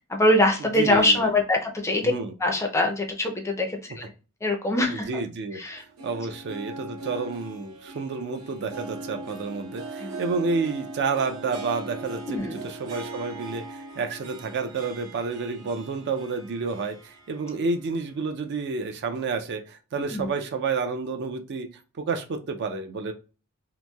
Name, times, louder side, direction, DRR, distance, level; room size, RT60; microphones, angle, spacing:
voice 1, 0.1-2.1 2.4-4.0 4.4-5.1 5.5-5.8 10.0-10.1 12.3-12.7 20.1-20.3, left 1 dB, 15° left, 2 dB, 0.4 m, -23 dB
voice 2, 0.8-1.3 2.0-2.3 4.9-12.2 12.5-21.7 22.0-23.1, right 4 dB, 50° right, 6 dB, 0.4 m, -30 dB
Harp, 5.7-17.9 18.2-18.3 19.2-19.3, right 2 dB, 80° right, 0.8 m, -40 dB
2.9 x 2.6 x 2.2 m, 0.33 s
head